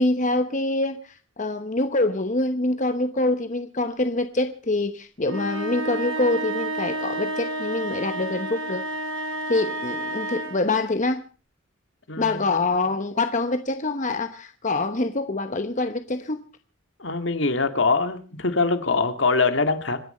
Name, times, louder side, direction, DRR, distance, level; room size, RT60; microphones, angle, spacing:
voice 1, 0.0-8.8 9.5-11.2 12.2-16.4, left 2 dB, 40° left, 8 dB, 1.1 m, -25 dB
sound 1, 5.2-10.7, right 1 dB, 80° right, 5.9 m, -30 dB
voice 2, 12.1-12.7 17.0-20.0, left 3 dB, 70° left, 9 dB, 2.1 m, -23 dB
26.5 x 10.5 x 4.3 m, 0.37 s
head